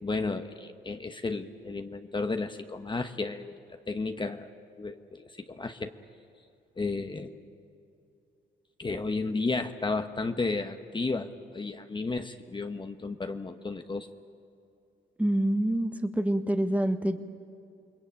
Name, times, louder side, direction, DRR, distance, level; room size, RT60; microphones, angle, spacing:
voice 1, 0.0-4.5 4.8-5.9 6.8-7.4 8.8-14.1, left 3 dB, 25° left, 7 dB, 1.1 m, -33 dB
voice 2, 15.2-17.2, right 1 dB, 5° right, 8 dB, 1.4 m, -26 dB
28.5 x 21.5 x 8.8 m, 2.7 s
cardioid pair, 90°, 20 cm